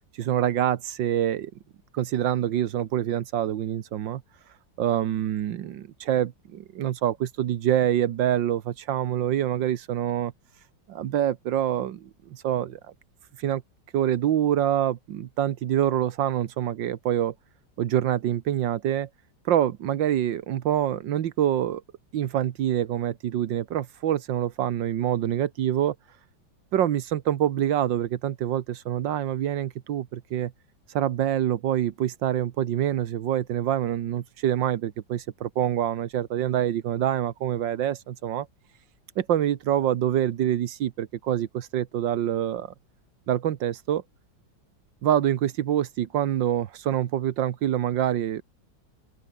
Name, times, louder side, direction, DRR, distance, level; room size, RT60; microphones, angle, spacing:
voice 1, 0.2-1.5 1.9-4.2 4.8-10.3 10.9-12.8 13.4-13.6 13.9-17.3 17.8-19.1 19.4-21.8 22.1-25.9 26.7-30.5 30.9-38.5 39.2-42.7 43.3-44.0 45.0-48.4, right 11 dB, 80° right, 1.7 m, -26 dB
open air
omnidirectional pair, 2.0 m